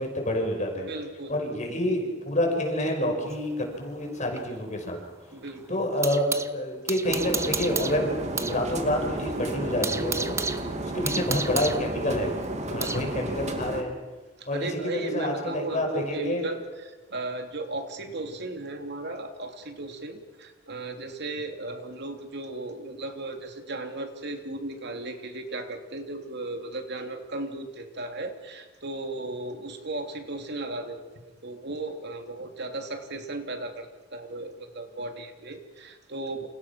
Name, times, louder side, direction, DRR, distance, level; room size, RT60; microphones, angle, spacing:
voice 1, 0.0-0.9 1.3-5.0 5.7-8.1 8.5-10.4 10.8-12.3 12.7-13.9 14.5-16.4, left 1 dB, 40° left, 2 dB, 5.7 m, -28 dB
voice 2, 0.7-1.8 5.3-5.9 12.8-13.2 14.4-36.5, right 2 dB, 60° right, 5 dB, 3.2 m, -36 dB
sound 1, 3.3-6.5 6.9-8.6 8.9-9.0 9.4-13.1, right 4 dB, 15° right, 1.0 m, -33 dB
sound 2, 7.1-13.8, right 1 dB, 35° right, 2.6 m, -33 dB
29.5 x 28.0 x 6.1 m, 1.3 s
head